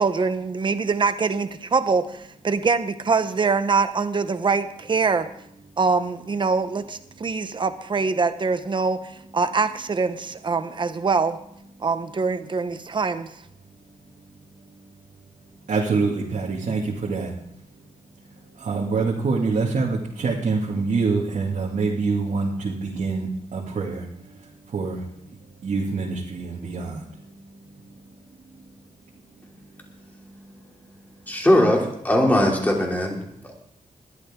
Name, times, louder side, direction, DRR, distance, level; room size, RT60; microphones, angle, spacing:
voice 1, 0.0-5.3 5.8-9.0 9.3-11.4 11.8-13.3, right 4 dB, 35° right, 10 dB, 0.9 m, -23 dB
voice 2, 15.7-17.3 18.6-24.0 24.7-25.0 25.6-27.0, right 4 dB, 65° right, -3 dB, 2.2 m, -25 dB
voice 3, 31.3-33.2 33.4-33.5, left 1 dB, 10° left, -1 dB, 2.9 m, -20 dB
20.5 x 12.0 x 3.7 m, 0.73 s
wide cardioid pair, 180°, 14 cm